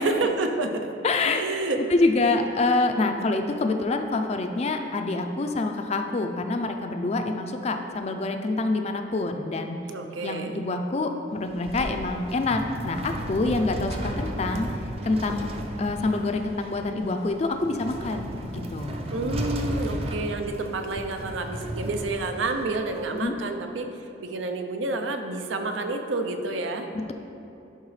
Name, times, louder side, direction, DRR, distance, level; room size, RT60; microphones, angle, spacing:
voice 1, 0.0-0.9 1.3-1.8 9.9-10.6 19.1-23.9 24.2-26.9, right 2 dB, 85° right, 5 dB, 0.6 m, -29 dB
voice 2, 1.0-1.5 1.9-9.8 10.2-14.7 15.0-15.5 15.8-19.0 23.1-23.4, left 3 dB, 35° left, 5 dB, 0.4 m, -26 dB
sound 1, 11.3-23.2, right 1 dB, 30° right, 0.5 m, -34 dB
11.0 x 4.8 x 3.2 m, 2.8 s
head